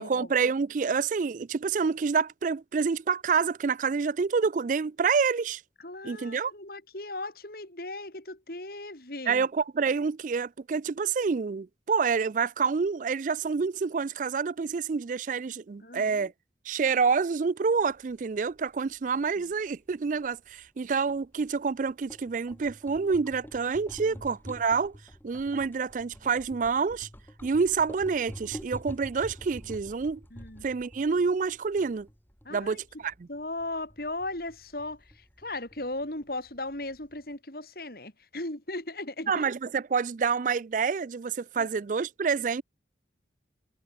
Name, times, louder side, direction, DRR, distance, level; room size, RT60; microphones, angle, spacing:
voice 1, 0.0-5.6 6.0-6.5 9.3-16.3 16.7-25.0 25.2-27.1 27.4-30.2 30.6-32.1 32.5-33.1 39.3-42.6, right 5 dB, 45° right, 0.4 m, -27 dB
voice 2, 5.8-9.5 15.8-16.3 19.4-19.5 24.1-24.2 30.3-30.7 32.4-33.0 33.3-39.5 41.6-41.7, left 2 dB, 55° left, 4.5 m, -37 dB
sound 1, 17.8-37.3, equal, 10° left, 5.4 m, -48 dB
head